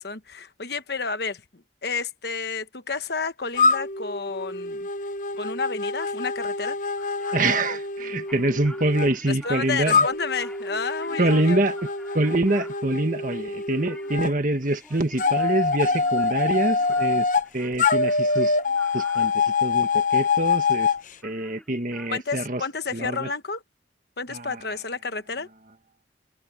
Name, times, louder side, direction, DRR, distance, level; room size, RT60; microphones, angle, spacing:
voice 1, 0.0-4.9 5.3-6.8 9.3-11.6 22.1-23.6 24.2-25.5, left 4 dB, 60° left, 1.2 m, -31 dB
sound 1, 3.6-9.1 9.9-14.3 15.2-17.5 17.8-21.0, left 4 dB, 45° left, 0.9 m, -25 dB
sound 2, 7.0-21.0 21.2-22.1, left 1 dB, 5° left, 4.2 m, -48 dB
voice 2, 7.3-10.0 11.2-11.7 12.1-17.3 17.5-18.6 18.9-20.9 21.2-22.6 22.9-23.3 24.3-24.6, right 2 dB, 45° right, 1.6 m, -25 dB
head